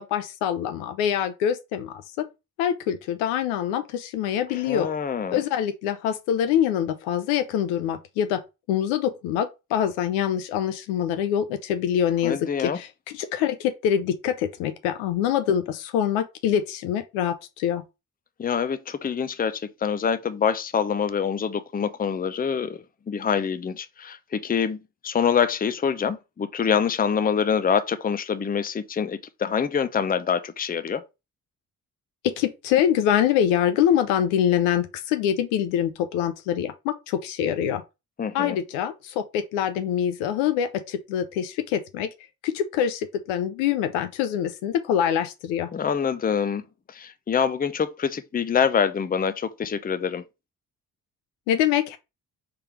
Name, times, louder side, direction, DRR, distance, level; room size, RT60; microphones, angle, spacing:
voice 1, 0.0-2.0 2.6-4.9 5.3-8.4 8.7-17.8 32.2-37.8 38.3-42.1 42.4-45.7 51.5-52.0, left 9 dB, 80° left, 0.7 m, -25 dB
voice 2, 4.5-5.4 12.2-12.8 18.4-31.0 38.2-38.6 45.7-50.2, left 7 dB, 20° left, 0.6 m, -25 dB
3.5 x 3.4 x 4.4 m
hypercardioid pair, 40°, 46 cm